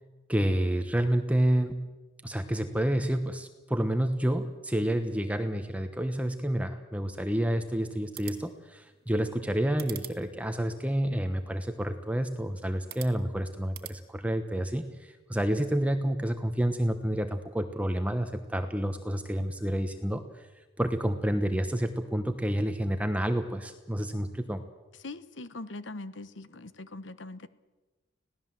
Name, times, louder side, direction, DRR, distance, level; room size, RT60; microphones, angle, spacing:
voice 1, 0.3-1.9 2.2-20.5 20.8-24.6, right 1 dB, 5° right, 7 dB, 1.0 m, -29 dB
sound 1, 8.0-14.0, right 12 dB, 55° right, 1.7 m, -49 dB
voice 2, 25.0-27.5, left 2 dB, 80° left, 14 dB, 1.1 m, -41 dB
26.0 x 17.5 x 7.6 m, 1.2 s
head